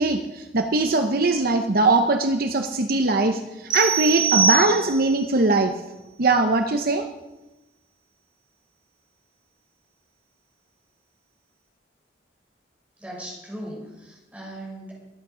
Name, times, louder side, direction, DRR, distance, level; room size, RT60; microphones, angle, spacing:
voice 1, 0.0-5.7 6.2-7.0, right 3 dB, 55° right, 6 dB, 0.8 m, -21 dB
sound 1, 3.7-5.2, right 5 dB, 25° right, 1.7 m, -23 dB
voice 2, 13.0-14.9, right 1 dB, 10° right, -4 dB, 5.6 m, -38 dB
22.0 x 8.8 x 5.0 m, 1.0 s
head